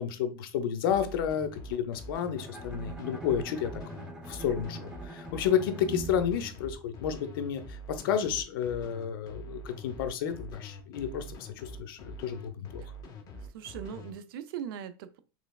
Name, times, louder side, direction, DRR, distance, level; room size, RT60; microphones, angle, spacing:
voice 1, 0.0-3.8 4.3-12.8, left 8 dB, 80° left, 0.6 m, -31 dB
sound 1, 0.9-14.1, equal, 35° left, 0.7 m, -45 dB
Bowed string instrument, 2.3-7.4, right 3 dB, 5° right, 0.6 m, -44 dB
voice 2, 13.3-15.2, right 9 dB, 80° right, 0.4 m, -40 dB
3.2 x 3.0 x 2.3 m
supercardioid pair, 130°, 12 cm